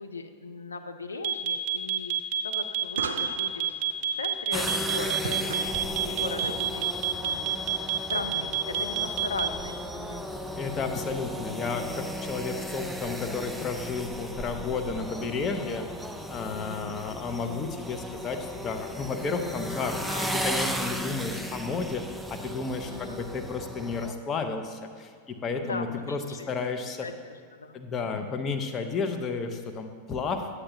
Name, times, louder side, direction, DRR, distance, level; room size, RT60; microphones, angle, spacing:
voice 1, 0.0-2.1 2.4-3.8 4.2-10.2 12.7-12.8 16.7-17.0 20.1-20.3 22.9-23.2 25.6-26.4 27.0-27.1 27.6-28.3, left 3 dB, 75° left, 7 dB, 0.5 m, -39 dB
sound 1, 1.2-9.6, right 10 dB, 45° right, 0.8 m, -27 dB
sound 2, 2.9-8.8, right 5 dB, 70° right, 0.5 m, -41 dB
sound 3, 4.5-24.1, equal, ahead, 0.4 m, -35 dB
voice 2, 10.6-27.1 27.7-30.5, left 4 dB, 25° left, 4 dB, 0.7 m, -32 dB
9.7 x 8.6 x 2.7 m, 2.1 s
figure-of-eight pair, 90°, 0 cm